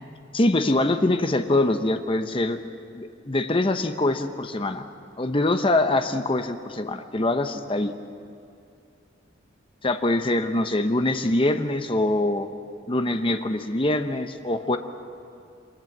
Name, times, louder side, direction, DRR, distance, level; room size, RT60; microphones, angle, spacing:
voice 1, 0.3-2.6 2.9-4.9 5.2-7.9 9.8-12.5 12.9-14.8, left 2 dB, 25° left, 8 dB, 0.8 m, -24 dB
24.0 x 20.0 x 7.3 m, 2.5 s
head